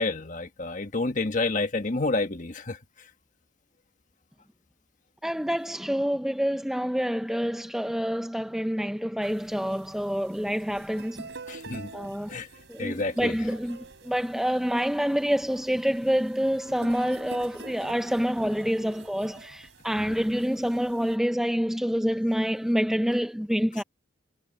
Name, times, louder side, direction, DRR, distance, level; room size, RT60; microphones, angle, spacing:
voice 1, 0.0-2.8 11.5-11.9 12.3-12.5 12.8-13.4, left 3 dB, 40° left, 1.5 m, -29 dB
voice 2, 5.2-11.3 11.9-12.3 12.7-23.8, equal, ahead, 0.5 m, -27 dB
sound 1, 9.2-21.2, right 3 dB, 65° right, 4.3 m, -48 dB
head